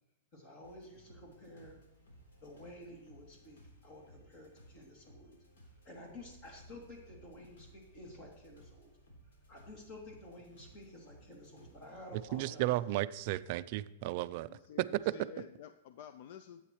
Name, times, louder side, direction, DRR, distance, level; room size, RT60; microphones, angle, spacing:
voice 1, 0.3-1.8 2.4-5.4 5.8-8.9 9.5-12.7, left 1 dB, 35° left, 0 dB, 2.8 m, -52 dB
sound 1, 0.6-12.3, right 1 dB, 85° left, 3.6 m, -60 dB
voice 2, 12.1-14.5 14.8-15.1, right 16 dB, 45° right, 14 dB, 0.4 m, -34 dB
voice 3, 14.5-16.6, left 9 dB, 50° left, 10 dB, 0.4 m, -51 dB
12.0 x 8.6 x 3.1 m, 1.0 s
supercardioid pair, 155°, 0 cm